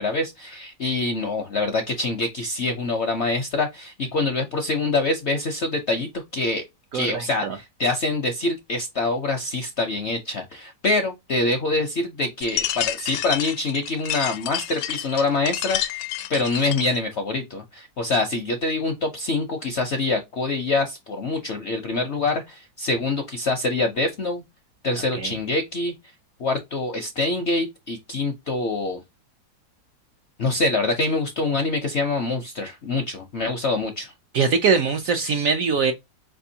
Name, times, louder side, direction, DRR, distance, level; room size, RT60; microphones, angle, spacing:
voice 1, 0.0-6.6 6.9-24.4 24.8-25.9 26.4-29.0 30.4-34.1, left 3 dB, 60° left, 0.7 m, -25 dB
voice 2, 6.9-7.6 25.2-25.3 34.3-35.9, right 5 dB, 70° right, 0.8 m, -22 dB
sound 1, 12.4-17.0, left 12 dB, 80° left, 1.2 m, -29 dB
4.8 x 3.4 x 2.7 m
omnidirectional pair, 1.9 m